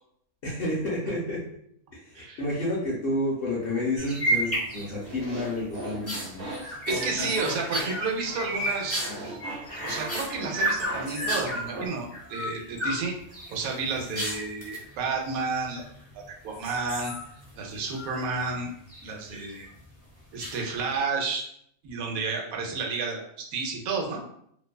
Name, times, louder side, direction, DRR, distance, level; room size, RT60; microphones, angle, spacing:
voice 1, 0.4-1.4 2.0-6.5 14.1-14.2, left 1 dB, 60° left, -5 dB, 0.6 m, -30 dB
sound 1, 4.0-5.2 5.6-11.7 12.1-13.0 13.3-14.8 15.6-16.2 16.5-18.6 18.9-19.5 20.4-20.9, right 1 dB, 20° left, 0.4 m, -32 dB
sound 2, 5.0-11.9, right 1 dB, 55° right, 1.0 m, -38 dB
voice 2, 6.9-9.0 9.8-13.1 13.5-15.9 16.1-17.1 17.5-18.7 19.0-19.7 20.3-21.4 21.8-24.2, right 4 dB, 85° right, 0 dB, 1.0 m, -31 dB
2.6 x 2.2 x 2.2 m, 0.69 s
omnidirectional pair, 1.5 m